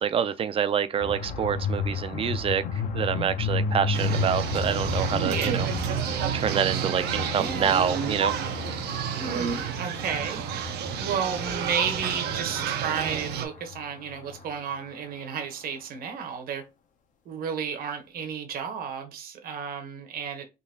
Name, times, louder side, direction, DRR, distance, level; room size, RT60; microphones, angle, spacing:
voice 1, 0.0-2.6 2.9-5.7 6.3-8.3, right 8 dB, 35° right, 0.4 m, -26 dB
sound 1, 1.0-14.9, left 4 dB, 50° left, 0.6 m, -33 dB
sound 2, 3.9-13.5, right 8 dB, 75° right, 0.6 m, -30 dB
voice 2, 7.3-8.4 9.2-10.4 11.0-16.6 17.3-20.5, right 7 dB, 60° right, 1.0 m, -32 dB
3.8 x 2.7 x 2.8 m
cardioid pair, 110°, 17 cm